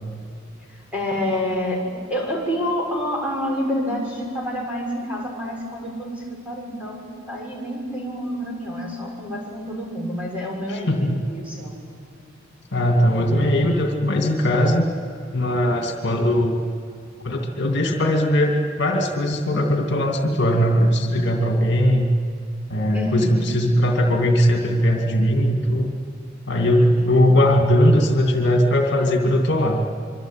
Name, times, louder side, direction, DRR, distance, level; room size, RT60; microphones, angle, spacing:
voice 1, 0.7-1.8 2.1-11.7 22.9-23.4 27.0-27.2, equal, 5° right, -2 dB, 6.7 m, -28 dB
voice 2, 10.7-11.2 12.7-14.9 15.3-16.6 17.2-18.5 18.8-22.1 22.7-25.9 26.5-29.8, equal, 60° left, 3 dB, 2.5 m, -19 dB
25.5 x 24.5 x 9.1 m, 2.4 s
head